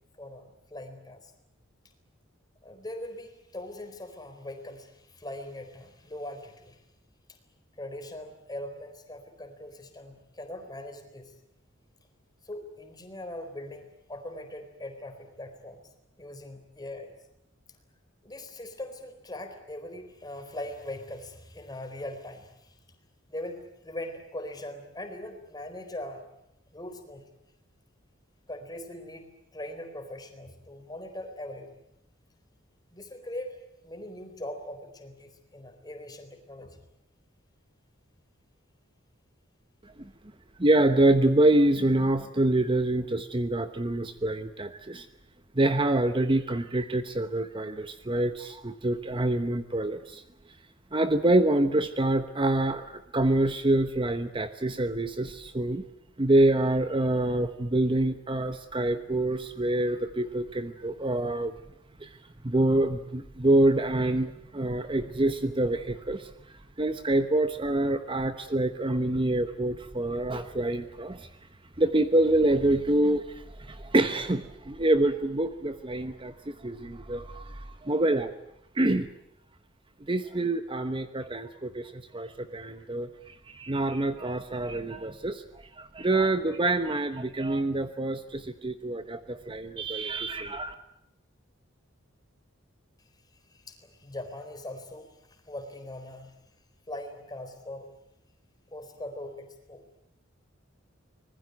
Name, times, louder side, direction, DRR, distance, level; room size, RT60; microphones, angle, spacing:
voice 1, 0.2-1.3 2.6-6.8 7.8-11.3 12.4-15.8 16.2-17.1 18.2-22.8 23.3-26.2 26.7-27.2 28.5-31.8 32.9-33.6 33.8-36.8 93.5-96.4 96.9-97.9 98.7-99.8, left 1 dB, 20° left, 6 dB, 4.0 m, -41 dB
voice 2, 40.6-45.1 45.5-50.2 50.9-55.8 56.2-61.5 62.0-62.2 62.4-66.3 66.8-71.3 71.8-78.3 78.7-79.1 80.1-85.4 85.8-90.7, right 1 dB, 25° right, 10 dB, 1.0 m, -26 dB
25.0 x 20.5 x 9.2 m, 0.78 s
head